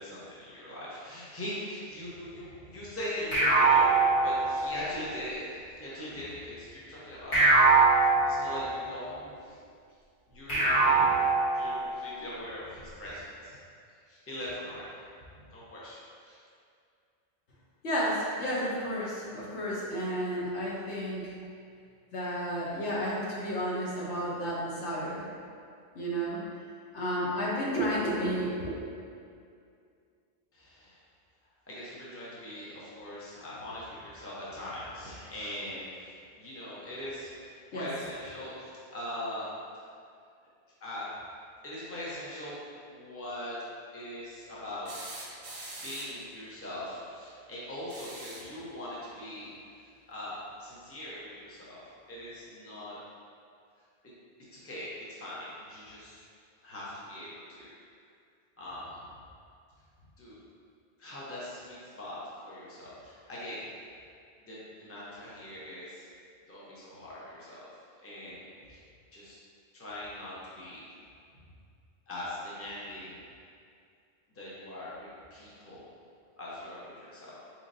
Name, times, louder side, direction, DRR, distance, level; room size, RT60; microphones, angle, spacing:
voice 1, 0.0-7.5 8.2-9.6 10.3-11.3 11.5-13.6 14.1-14.8 15.5-16.4 30.5-31.0 31.7-39.5 40.8-41.1 41.6-42.6 42.9-43.6 43.9-44.9 45.8-49.5 50.1-51.8 52.1-53.0 54.5-56.2 56.6-57.7 58.6-59.0 60.2-60.4 61.0-62.2 62.4-63.7 64.5-66.0 66.5-67.7 68.0-68.8 69.1-69.4 69.7-70.9 72.1-73.2 74.3-75.9 76.4-77.4, left 1 dB, 15° left, -8 dB, 0.6 m, -41 dB
sound 1, 3.3-4.9 7.3-8.9 10.5-12.0, right 3 dB, 60° left, 1.5 m, -23 dB
voice 2, 17.8-21.3 22.1-25.2 25.9-26.4 26.9-28.7 37.7-37.9, equal, 85° left, -6 dB, 1.1 m, -32 dB
sound 2, 44.9-46.3 47.8-48.6 50.2-50.3 51.8-51.9, right 2 dB, 50° right, 0.6 m, -43 dB
4.0 x 3.1 x 2.6 m, 2.3 s
omnidirectional pair, 1.1 m